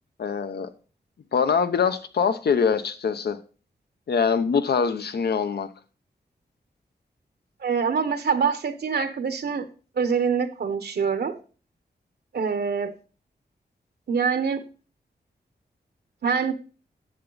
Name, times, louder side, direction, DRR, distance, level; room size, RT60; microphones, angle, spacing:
voice 1, 0.2-0.7 1.3-3.4 4.1-5.7, left 6 dB, 70° left, 0.8 m, -23 dB
voice 2, 7.6-9.7 9.9-11.4 12.3-12.9 14.1-14.6 16.2-16.5, right 6 dB, 70° right, 1.0 m, -25 dB
10.5 x 7.1 x 3.9 m
wide cardioid pair, 90°, 17 cm